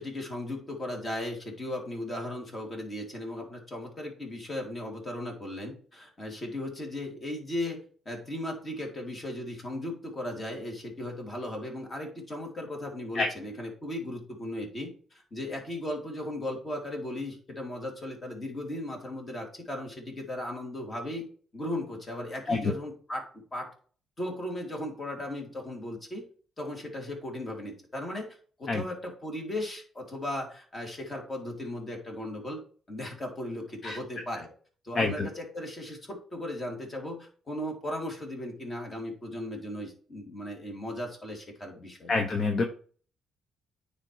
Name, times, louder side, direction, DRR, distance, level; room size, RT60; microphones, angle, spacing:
voice 1, 0.0-21.3 21.5-23.7 24.2-26.2 26.6-28.3 28.6-32.6 32.9-34.5 34.8-42.2, left 1 dB, 30° left, 1 dB, 2.9 m, -37 dB
voice 2, 35.0-35.3 42.1-42.6, left 3 dB, 45° left, 4 dB, 1.0 m, -26 dB
9.6 x 3.5 x 4.7 m, 0.43 s
cardioid pair, 90°, 0 cm